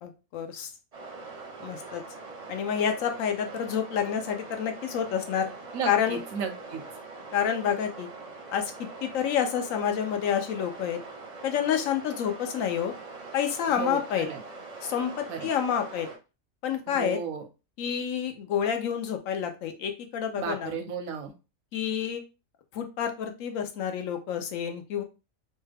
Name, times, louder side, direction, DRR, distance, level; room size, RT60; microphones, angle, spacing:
voice 1, 0.0-0.7 1.6-2.0 2.5-5.5 5.8-6.2 7.3-8.1 8.5-11.0 11.4-12.9 13.3-14.3 14.8-16.1 16.6-17.2 17.8-20.7 21.7-22.2 22.7-25.0, left 8 dB, 75° left, 6 dB, 1.0 m, -28 dB
sound 1, 0.9-16.2, right 3 dB, 40° right, 0.6 m, -43 dB
voice 2, 5.7-6.8 13.7-14.4 15.3-15.5 16.9-17.4 20.4-21.3, right 6 dB, 90° right, 6 dB, 1.1 m, -34 dB
3.1 x 2.3 x 3.3 m, 0.30 s
omnidirectional pair, 1.4 m